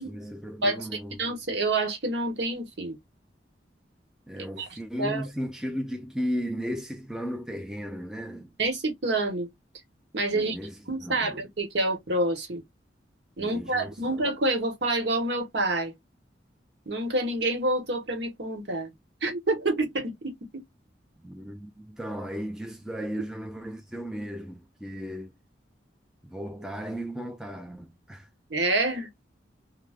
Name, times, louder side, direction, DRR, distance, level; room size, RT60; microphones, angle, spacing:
voice 1, 0.0-1.2 4.3-8.5 10.3-11.4 13.4-14.2 21.2-25.3 26.2-28.3, equal, 5° right, 0.4 m, -35 dB
voice 2, 0.6-3.0 4.6-5.2 8.6-9.5 10.1-10.6 10.9-12.6 13.4-15.9 16.9-18.9 19.2-20.6 28.5-29.1, right 2 dB, 65° right, 1.0 m, -28 dB
2.2 x 2.0 x 3.3 m
head